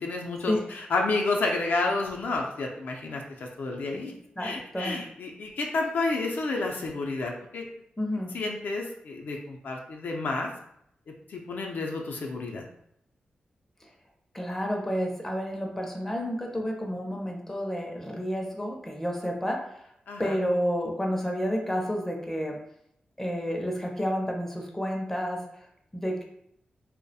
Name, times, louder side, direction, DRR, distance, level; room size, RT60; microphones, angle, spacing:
voice 1, 0.0-4.1 4.4-7.7 8.3-10.5 11.3-12.6 20.1-20.4, left 3 dB, 75° left, 1 dB, 0.4 m, -30 dB
voice 2, 4.4-5.0 8.0-8.3 13.8-13.9 14.3-19.9 20.2-22.6 23.2-25.4 25.9-26.2, equal, 10° left, 1 dB, 0.4 m, -30 dB
2.2 x 2.0 x 2.7 m, 0.72 s
wide cardioid pair, 110°, 3 cm